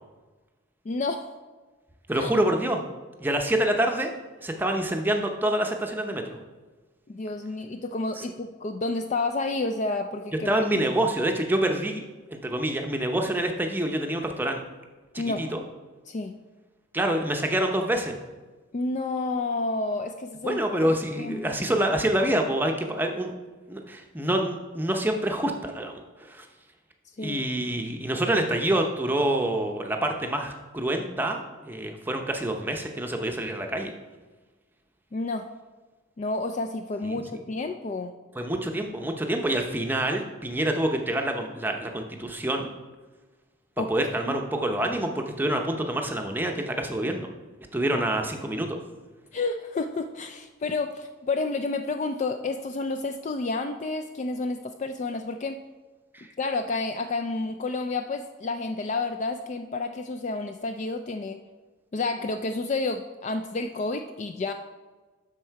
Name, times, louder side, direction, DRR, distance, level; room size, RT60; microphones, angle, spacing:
voice 1, 0.9-1.4 2.2-2.3 7.1-10.7 15.2-15.5 16.1-16.4 18.7-20.8 21.2-21.5 27.2-27.4 35.1-35.5 36.2-38.2 43.8-43.9 44.3-44.4 47.9-48.0 49.3-55.6 56.4-61.4 61.9-64.5, left 3 dB, 35° left, 7 dB, 0.3 m, -30 dB
voice 2, 2.1-2.8 3.2-4.1 4.4-6.4 8.2-8.3 10.5-12.0 12.3-14.6 15.4-15.6 16.9-18.2 20.4-23.3 23.7-26.5 27.2-33.9 37.0-37.4 38.3-42.7 43.9-47.3 47.7-48.8 56.1-56.3, right 1 dB, 10° right, 3 dB, 0.6 m, -27 dB
12.0 x 4.3 x 4.6 m, 1.3 s
head